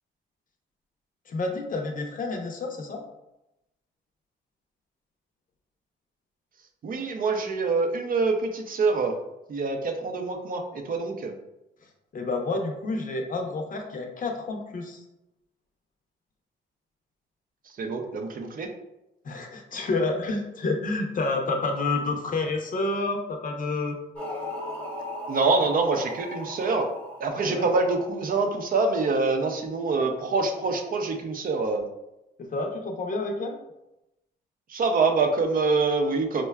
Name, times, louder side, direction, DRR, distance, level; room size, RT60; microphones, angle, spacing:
voice 1, 1.3-3.0 12.1-15.0 19.2-24.0 27.4-27.6 32.4-33.6, left 3 dB, 45° left, 3 dB, 0.6 m, -29 dB
voice 2, 6.8-9.2 9.5-11.4 17.8-18.7 25.3-26.9 27.2-31.8 34.7-36.4, right 3 dB, 45° right, 4 dB, 0.5 m, -25 dB
sound 1, 24.1-28.4, left 1 dB, 5° left, 0.8 m, -37 dB
4.3 x 2.2 x 2.3 m, 0.91 s
cardioid pair, 90°, 20 cm